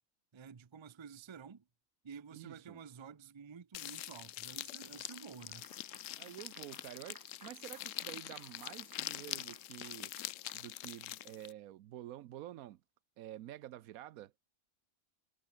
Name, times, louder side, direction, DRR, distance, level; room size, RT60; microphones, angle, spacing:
voice 1, 0.3-1.6 2.0-5.7, right 6 dB, 35° right, 0.5 m, -51 dB
voice 2, 2.3-2.8 6.2-10.1 10.5-12.8 13.2-14.3, right 13 dB, 85° right, 1.1 m, -49 dB
sound 1, 3.7-11.5, left 14 dB, 70° left, 0.9 m, -44 dB
Clapping / Applause, 5.0-11.3, right 1 dB, 15° right, 2.7 m, -62 dB
omnidirectional pair, 1.5 m